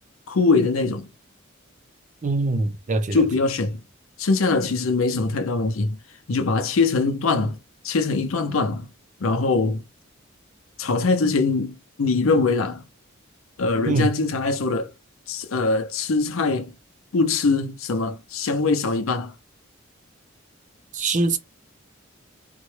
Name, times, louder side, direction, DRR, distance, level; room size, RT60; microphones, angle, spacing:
voice 1, 0.3-1.1 3.1-3.8 4.2-6.0 6.3-7.6 7.8-8.9 9.2-9.8 10.8-12.8 13.6-14.9 15.3-16.7 17.1-19.3, left 3 dB, 90° left, 0.6 m, -22 dB
voice 2, 2.2-3.3 13.9-14.1 20.9-21.4, right 3 dB, 40° right, 0.5 m, -23 dB
3.9 x 2.2 x 3.2 m
head